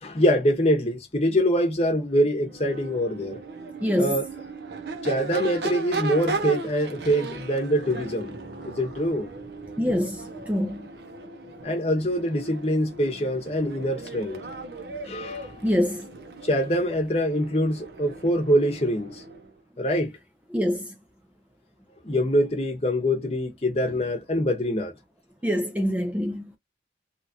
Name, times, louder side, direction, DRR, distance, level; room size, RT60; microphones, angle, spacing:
voice 1, 0.0-3.4 3.9-4.3 5.0-8.3 8.6-9.3 11.6-14.4 15.1-15.5 16.4-19.2 19.8-20.1 22.0-24.9, equal, 35° left, 0.9 m, -24 dB
Crowd / Race car auto racing / Accelerating revving vroom, 2.4-19.5, right 3 dB, 65° right, 0.7 m, -37 dB
voice 2, 3.8-4.2 9.8-10.9 15.6-16.1 20.5-20.9 25.4-26.5, equal, 10° right, 0.4 m, -25 dB
3.0 x 2.4 x 2.7 m
head